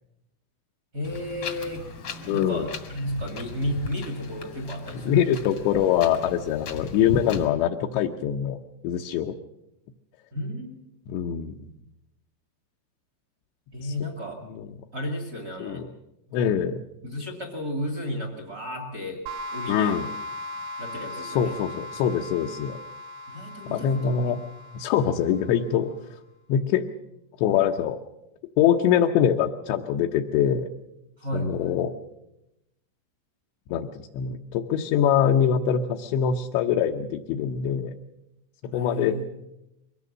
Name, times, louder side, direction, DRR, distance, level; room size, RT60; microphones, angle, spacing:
voice 1, 0.9-5.3 10.3-10.9 13.7-14.4 14.9-15.8 16.3-16.5 17.0-19.2 19.5-20.0 20.8-21.6 23.3-24.3 31.2-31.7 38.7-39.2, equal, 40° right, 4 dB, 1.4 m, -33 dB
Wind, 1.0-7.4, left 3 dB, 55° left, 1.6 m, -37 dB
voice 2, 2.3-2.7 5.0-8.6 8.8-9.4 11.1-11.6 14.5-14.7 15.6-15.9 16.3-16.8 19.7-20.1 21.2-22.8 23.7-24.4 24.7-25.9 26.5-26.8 27.4-28.0 28.6-30.7 31.3-31.9 33.7-38.0 38.7-39.2, left 9 dB, 75° left, 2 dB, 2.8 m, -24 dB
sound 1, 19.3-25.8, left 2 dB, 75° right, 4.0 m, -38 dB
23.5 x 18.0 x 7.4 m, 0.89 s
omnidirectional pair, 5.9 m